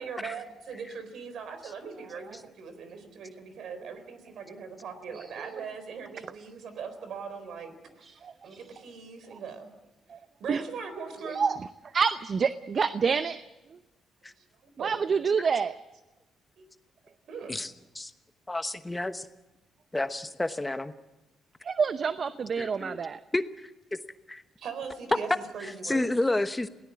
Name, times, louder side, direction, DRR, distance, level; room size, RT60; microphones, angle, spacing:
voice 1, 0.0-9.7 10.4-11.4 14.8-15.0 16.6-16.7 17.3-17.6 24.6-26.1, right 6 dB, 70° right, 10 dB, 4.0 m, -40 dB
voice 2, 5.1-5.6 8.0-8.6 9.3-9.4 10.1-10.2 10.5-10.6 11.3-11.6 11.9-13.4 14.8-15.7 21.6-23.2, right 6 dB, 45° right, 12 dB, 0.7 m, -28 dB
voice 3, 18.5-19.3 19.9-20.9 22.6-23.0 23.3-23.4 23.9-24.0 24.3-24.4 25.8-26.7, left 2 dB, 15° left, 10 dB, 1.1 m, -30 dB
22.0 x 17.5 x 8.5 m, 1.0 s
cardioid pair, 90°, 0 cm